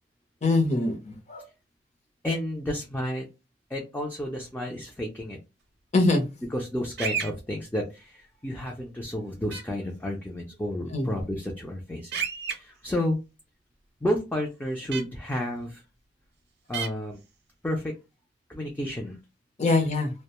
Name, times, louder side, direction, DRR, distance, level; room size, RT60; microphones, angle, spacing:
voice 1, 0.4-1.5 5.9-6.2 10.9-11.1 19.6-20.1, left 2 dB, 40° left, 0.7 m, -23 dB
voice 2, 2.2-3.3 3.7-5.4 6.5-12.2 12.5-13.2 14.0-15.8 16.7-17.2 17.6-17.9 18.5-19.2, left 1 dB, 10° left, 0.4 m, -31 dB
sound 1, 7.0-7.3 9.5-9.6 12.1-12.5 14.9-15.0 16.7-16.9, right 7 dB, 65° right, 0.6 m, -30 dB
2.4 x 2.2 x 2.9 m
head